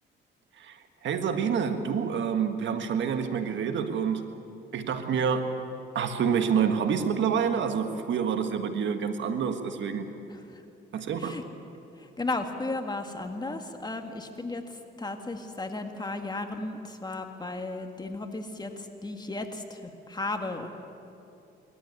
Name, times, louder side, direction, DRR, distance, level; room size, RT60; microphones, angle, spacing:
voice 1, 0.6-4.3 4.7-5.6 5.9-10.1 10.9-11.4, right 7 dB, 70° right, 7 dB, 1.6 m, -28 dB
voice 2, 10.3-10.6 11.2-11.4 12.0-20.7, left 2 dB, 20° left, 5 dB, 1.9 m, -35 dB
21.0 x 14.0 x 9.6 m, 2.8 s
cardioid pair, 90°, 20 cm